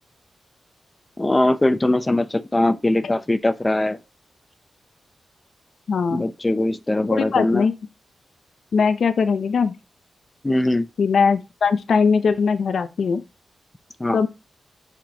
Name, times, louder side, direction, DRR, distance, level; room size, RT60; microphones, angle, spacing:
voice 1, 1.2-4.0 6.1-7.6 10.4-10.9 14.0-14.2, left 1 dB, 20° left, 0.7 m, -21 dB
voice 2, 5.9-6.3 7.1-7.7 8.7-9.7 11.0-13.2 14.1-14.3, left 5 dB, 70° left, 0.7 m, -20 dB
6.1 x 6.0 x 2.9 m
cardioid pair, 70°, 0 cm